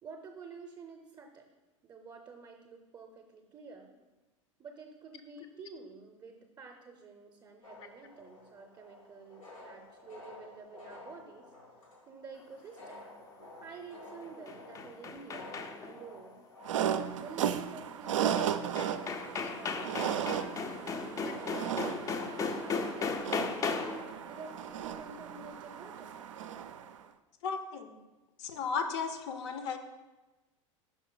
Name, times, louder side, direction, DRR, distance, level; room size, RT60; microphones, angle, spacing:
voice 1, 0.0-1.4 1.8-4.0 4.6-11.5 12.1-13.0 13.6-16.5 17.1-21.5 22.4-26.1 27.5-27.6, right 4 dB, 25° right, 4 dB, 0.6 m, -50 dB
sound 1, 7.6-25.2, left 2 dB, 85° left, 1.7 m, -53 dB
sound 2, 14.2-16.0 18.4-18.5 18.8-24.1, left 4 dB, 20° left, 0.4 m, -36 dB
sound 3, 16.6-27.0, right 9 dB, 70° right, 0.4 m, -35 dB
voice 2, 27.4-27.9 28.4-29.8, left 5 dB, 60° left, 8 dB, 0.7 m, -35 dB
5.5 x 5.1 x 3.8 m, 1.1 s
figure-of-eight pair, 85°, 17 cm